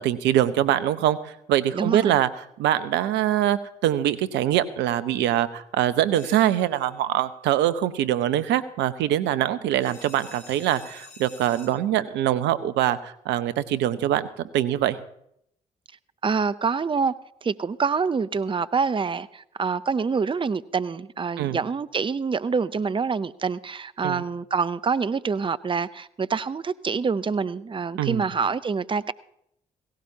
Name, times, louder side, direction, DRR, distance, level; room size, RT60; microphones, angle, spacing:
voice 1, 0.0-2.3 2.6-14.3 14.5-15.0 21.4-21.6 24.0-24.2 28.0-28.3, right 12 dB, 75° right, 0.8 m, -23 dB
voice 2, 1.7-2.2 16.2-17.1 17.4-29.1, right 5 dB, 25° right, 0.6 m, -26 dB
sound 1, 6.1-7.0 9.8-11.7, left 4 dB, 60° left, 3.3 m, -48 dB
17.0 x 16.5 x 2.8 m
hypercardioid pair, 45°, 19 cm